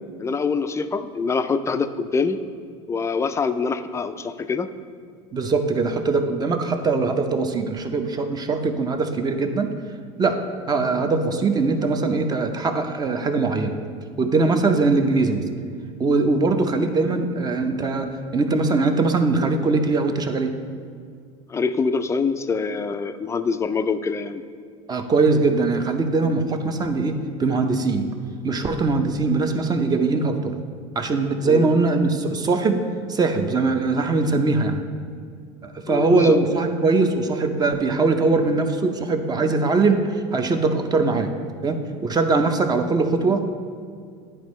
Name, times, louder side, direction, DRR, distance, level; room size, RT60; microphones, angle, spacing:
voice 1, 0.2-2.4 2.9-4.7 21.5-24.4 31.4-31.7 35.9-36.4, left 5 dB, 20° left, 10 dB, 0.3 m, -24 dB
voice 2, 5.3-9.7 10.2-10.4 10.7-13.8 14.2-15.4 16.0-20.5 24.9-28.1 28.4-30.6 31.0-32.8 33.1-34.8 35.6-41.3 41.6-43.6, right 3 dB, 25° right, 6 dB, 0.6 m, -21 dB
10.0 x 4.3 x 3.1 m, 2.2 s
supercardioid pair, 95°, 15 cm